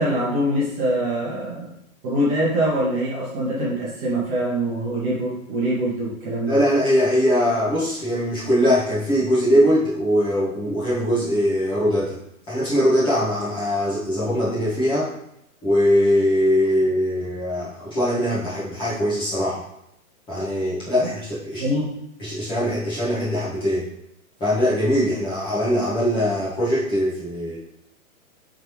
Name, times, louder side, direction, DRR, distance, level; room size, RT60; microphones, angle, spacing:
voice 1, 0.0-1.7 2.0-6.6 20.9-21.1 21.6-21.9, right 1 dB, 25° right, -7 dB, 1.5 m, -24 dB
voice 2, 6.5-12.2 12.5-15.1 15.6-19.6 20.3-21.6 22.2-23.9 24.4-27.6, equal, 10° left, -10 dB, 1.6 m, -21 dB
8.7 x 3.9 x 3.1 m, 0.79 s
hypercardioid pair, 165°, 44 cm